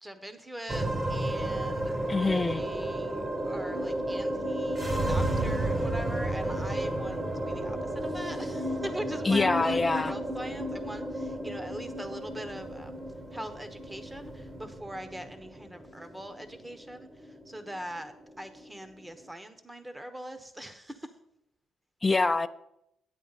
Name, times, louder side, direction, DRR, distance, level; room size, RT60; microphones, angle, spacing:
voice 1, 0.0-12.9 13.3-21.1, right 1 dB, 10° right, 1.0 m, -42 dB
sound 1, 0.7-19.2, right 1 dB, 25° right, 1.4 m, -33 dB
voice 2, 2.1-2.6 9.2-10.1 22.0-22.5, left 3 dB, 20° left, 0.5 m, -25 dB
10.0 x 8.6 x 4.1 m
cardioid pair, 90°, 0 cm